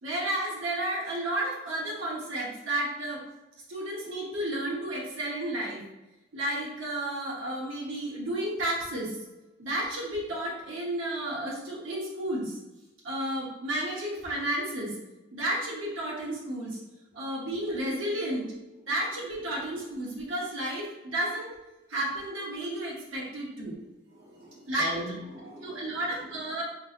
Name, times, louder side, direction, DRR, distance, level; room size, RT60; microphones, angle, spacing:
voice 1, 0.0-3.2 3.7-5.8 6.3-9.2 9.6-12.6 13.0-14.9 15.3-16.8 17.1-18.4 18.9-21.5 21.9-23.8 24.7-25.0 25.6-26.6, right 1 dB, 85° right, -5 dB, 0.9 m, -32 dB
voice 2, 24.1-26.6, equal, 60° right, -4 dB, 1.0 m, -41 dB
4.0 x 3.3 x 2.4 m, 1.0 s
head